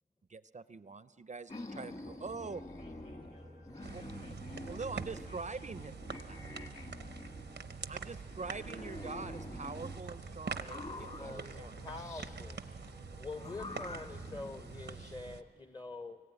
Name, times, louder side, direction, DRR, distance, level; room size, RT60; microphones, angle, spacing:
voice 1, 0.3-2.6 3.9-4.0 4.7-5.9 6.3-6.4 7.9-11.8, right 4 dB, 45° right, 14 dB, 0.4 m, -44 dB
sound 1, 1.5-5.4 5.7-7.8 8.3-10.0 10.5-12.4 13.3-15.1, left 2 dB, 40° left, 1.7 m, -47 dB
sound 2, 2.5-14.2, left 1 dB, 85° left, 5.8 m, -55 dB
voice 2, 2.8-5.8, left 1 dB, 60° left, 1 dB, 4.9 m, -60 dB
sound 3, 3.8-15.4, right 5 dB, 90° right, 0.7 m, -45 dB
voice 3, 11.2-12.6 13.2-16.2, left 3 dB, 20° left, 10 dB, 0.6 m, -45 dB
24.0 x 19.5 x 8.9 m, 2.8 s
wide cardioid pair, 55°, 17 cm